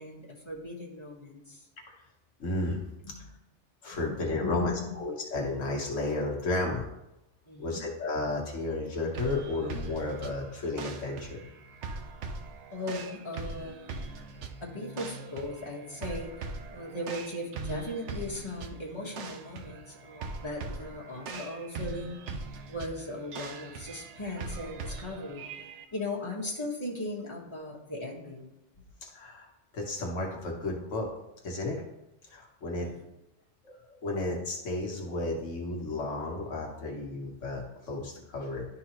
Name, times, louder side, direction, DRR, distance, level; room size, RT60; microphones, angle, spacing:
voice 1, 0.0-1.7 3.0-3.1 3.9-5.0 7.5-7.8 12.7-14.0 14.6-22.4 22.7-25.4 25.9-28.5 32.8-33.1, left 1 dB, 25° left, -3 dB, 1.4 m, -38 dB
voice 2, 2.4-2.8 3.8-6.9 7.6-11.5 29.0-31.1 31.4-31.8 32.3-32.9 33.6-38.7, left 2 dB, 80° left, -1 dB, 1.4 m, -33 dB
sound 1, 9.1-25.8, right 4 dB, 75° right, 0.9 m, -41 dB
11.5 x 4.0 x 3.0 m, 0.91 s
omnidirectional pair, 1.3 m